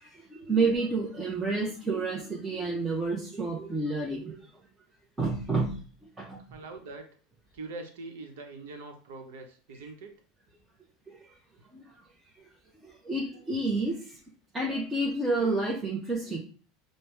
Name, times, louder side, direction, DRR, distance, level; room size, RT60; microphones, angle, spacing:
voice 1, 0.0-4.4 5.2-5.8 6.2-6.4 11.1-11.2 11.7-11.9 12.8-14.2 14.5-16.4, right 3 dB, 15° right, -3 dB, 0.7 m, -29 dB
voice 2, 6.5-7.1 7.5-10.1, right 3 dB, 85° right, 4 dB, 0.8 m, -43 dB
5.2 x 2.1 x 3.3 m, 0.41 s
supercardioid pair, 120°, 0 cm